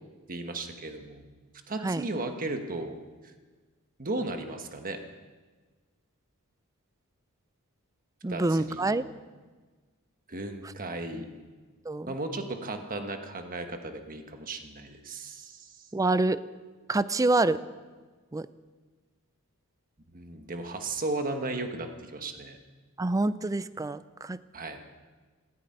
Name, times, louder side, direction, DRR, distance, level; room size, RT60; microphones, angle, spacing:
voice 1, 0.3-1.3 1.7-3.0 4.0-5.0 8.3-8.9 10.3-11.3 12.1-15.9 20.1-22.6 24.5-24.8, right 2 dB, 40° right, 5 dB, 1.3 m, -35 dB
voice 2, 8.2-9.0 11.9-12.1 15.9-16.4 16.9-17.6 18.3-18.5 23.0-24.4, right 2 dB, 15° right, 15 dB, 0.4 m, -26 dB
14.0 x 9.9 x 8.8 m, 1.4 s
head